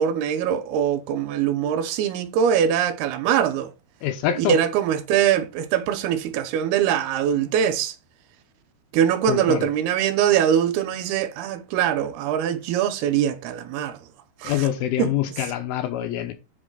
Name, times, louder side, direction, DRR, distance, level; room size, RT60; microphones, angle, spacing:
voice 1, 0.0-3.7 4.4-8.0 8.9-14.0 14.4-14.7 15.0-15.1 15.4-15.5, right 9 dB, 80° right, 2.8 m, -22 dB
voice 2, 4.0-4.6 9.3-9.7 14.4-16.3, left 11 dB, 75° left, 2.4 m, -25 dB
8.5 x 5.5 x 3.9 m
omnidirectional pair, 4.7 m